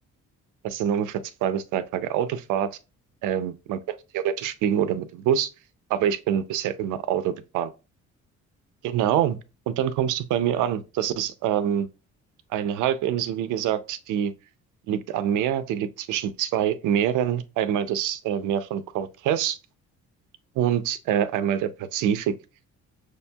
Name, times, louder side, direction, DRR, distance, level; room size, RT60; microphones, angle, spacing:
voice 1, 0.6-2.7 3.2-5.5 5.9-7.7 8.8-9.4 9.7-11.9 12.5-14.3 14.9-19.6 20.6-22.3, right 10 dB, 90° right, 0.5 m, -25 dB
6.3 x 2.7 x 2.2 m
cardioid pair, 90°, 30 cm